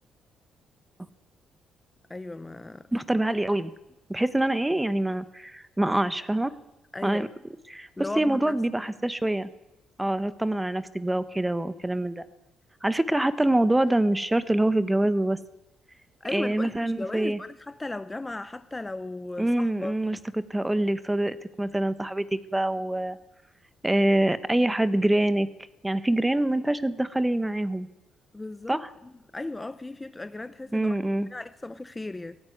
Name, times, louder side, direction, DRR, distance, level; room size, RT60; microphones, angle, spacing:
voice 1, 2.1-2.9 6.9-7.3 8.0-8.6 16.2-20.0 28.3-31.0 31.3-32.4, left 2 dB, 15° left, 0.9 m, -36 dB
voice 2, 2.9-3.7 4.1-6.5 7.0-7.3 7.7-7.9 8.2-9.5 10.0-12.2 12.8-15.4 16.3-17.4 19.4-20.2 20.5-23.2 23.8-25.5 25.8-27.9 28.7-28.9 30.7-31.3, right 1 dB, 10° right, 1.2 m, -25 dB
18.0 x 16.0 x 9.4 m
cardioid pair, 90°, 0 cm